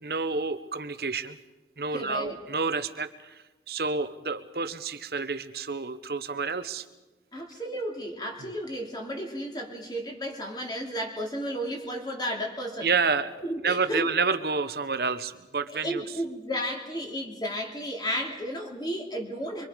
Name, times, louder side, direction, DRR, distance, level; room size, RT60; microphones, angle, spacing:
voice 1, 0.0-1.4 1.8-6.8 8.4-8.5 12.8-13.3 13.6-16.0, right 4 dB, 60° right, 11 dB, 1.0 m, -29 dB
voice 2, 1.9-2.4 7.3-12.9 13.4-14.1 15.7-19.7, equal, 25° left, 1 dB, 3.1 m, -33 dB
25.0 x 24.0 x 5.2 m, 1.1 s
head